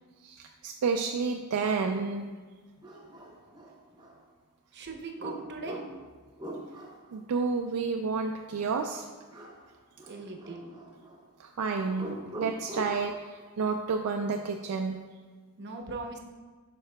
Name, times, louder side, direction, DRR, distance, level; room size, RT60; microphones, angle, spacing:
voice 1, 0.2-2.3 7.1-9.1 11.4-15.0, right 4 dB, 75° right, 4 dB, 0.4 m, -30 dB
sound 1, 2.1-2.2 2.8-4.2 5.2-7.1 9.3-9.7 10.0-11.2 11.9-13.1, right 1 dB, 20° right, 0.8 m, -43 dB
voice 2, 4.7-5.8 10.1-10.7 15.6-16.2, right 3 dB, 50° right, 3 dB, 0.7 m, -39 dB
8.0 x 5.6 x 2.2 m, 1.4 s
head